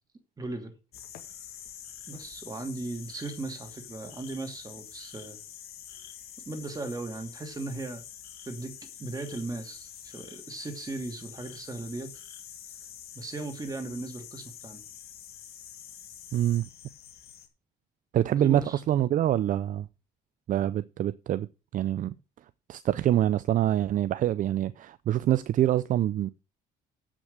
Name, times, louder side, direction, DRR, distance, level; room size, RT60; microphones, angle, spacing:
voice 1, 0.4-0.7 2.1-5.4 6.5-8.0 8.4-12.1 13.1-14.8 18.4-18.8, right 2 dB, 20° right, 2.8 m, -37 dB
sound 1, 0.9-17.5, left 9 dB, 65° left, 2.0 m, -46 dB
voice 2, 16.3-16.7 18.1-19.9 20.5-21.5 21.7-22.1 22.7-26.3, right 12 dB, 50° right, 0.5 m, -25 dB
7.9 x 6.1 x 7.8 m
cardioid pair, 110°, 17 cm